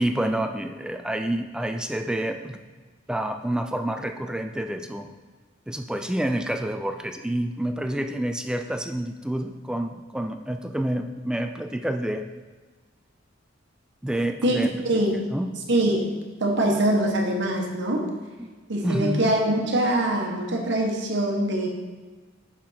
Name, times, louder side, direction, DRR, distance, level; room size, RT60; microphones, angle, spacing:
voice 1, 0.0-2.6 3.1-5.1 5.7-12.2 14.0-15.0 15.3-15.5 18.4-18.5 18.8-19.3, right 1 dB, 5° right, 6 dB, 0.3 m, -28 dB
voice 2, 15.7-16.1 16.4-18.1 18.7-21.7, right 1 dB, 65° right, 1 dB, 1.2 m, -23 dB
6.2 x 5.8 x 4.2 m, 1.3 s
head